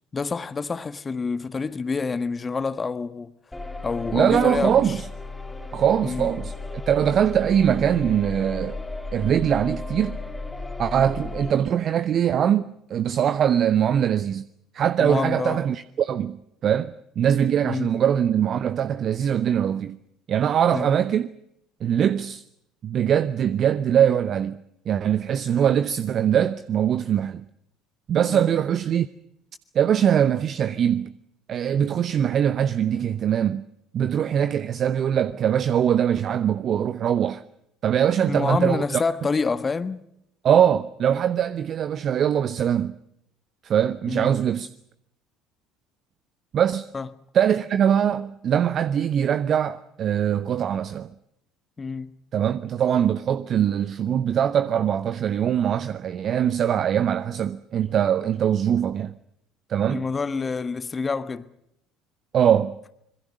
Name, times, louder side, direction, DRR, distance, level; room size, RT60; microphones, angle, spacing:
voice 1, 0.1-3.3 3.8-4.8 6.0-6.3 15.0-15.6 17.6-17.9 20.7-20.9 28.3-28.5 38.2-40.0 44.1-44.3 46.9-47.1 51.8-52.1 59.9-61.5, left 4 dB, 25° left, 1.4 m, -27 dB
sound 1, 3.5-11.5, left 3 dB, 10° left, 3.7 m, -34 dB
voice 2, 4.1-5.0 5.7-6.5 6.9-8.8 9.1-10.2 10.8-14.4 14.7-16.4 16.6-20.0 20.3-21.3 21.8-22.4 22.8-24.6 24.9-27.4 28.1-29.1 29.7-31.1 31.5-33.6 33.9-37.4 37.8-39.0 40.4-42.9 43.6-44.7 46.5-46.9 47.3-51.1 52.3-59.1 59.7-60.0 62.3-62.8, right 9 dB, 45° right, 0.8 m, -22 dB
26.0 x 22.5 x 6.5 m
figure-of-eight pair, 60°, 0 cm